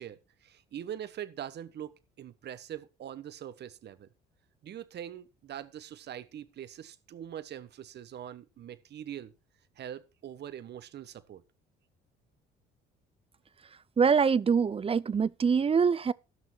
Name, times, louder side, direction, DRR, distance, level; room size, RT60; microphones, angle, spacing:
voice 1, 0.0-4.1 4.6-9.3 9.8-11.4, right 10 dB, 55° right, 1.2 m, -43 dB
voice 2, 14.0-16.1, right 6 dB, 30° right, 0.6 m, -24 dB
15.5 x 6.3 x 4.5 m
supercardioid pair, 65°, 21 cm